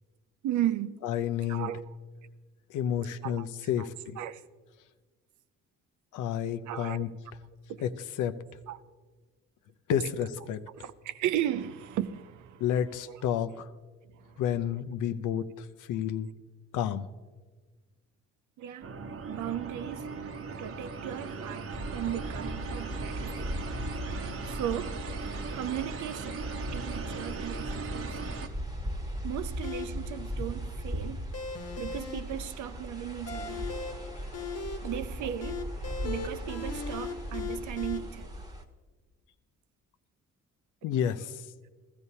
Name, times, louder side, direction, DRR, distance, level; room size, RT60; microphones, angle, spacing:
voice 1, 0.4-0.9 1.5-1.9 3.2-3.5 3.8-3.9 4.2-4.4 6.7-7.0 7.7-7.8 8.7-8.8 10.7-12.6 13.1-13.2 14.2-14.4 18.6-23.8 24.5-25.1 25.5-28.2 29.2-31.2 31.8-33.7 34.8-35.7 36.0-38.4, right 11 dB, 75° right, 0.6 m, -36 dB
voice 2, 1.0-1.7 2.7-4.2 6.1-7.1 7.8-7.9 8.2-8.3 9.9-10.6 12.6-13.7 14.4-16.3 16.7-17.1 40.8-41.5, left 9 dB, 80° left, 0.6 m, -30 dB
sound 1, 18.8-28.5, right 4 dB, 50° right, 0.9 m, -39 dB
sound 2, 21.7-38.6, equal, 15° right, 1.1 m, -38 dB
sound 3, 29.6-38.0, left 4 dB, 55° left, 1.1 m, -40 dB
15.0 x 14.0 x 2.8 m
cardioid pair, 90°, 30 cm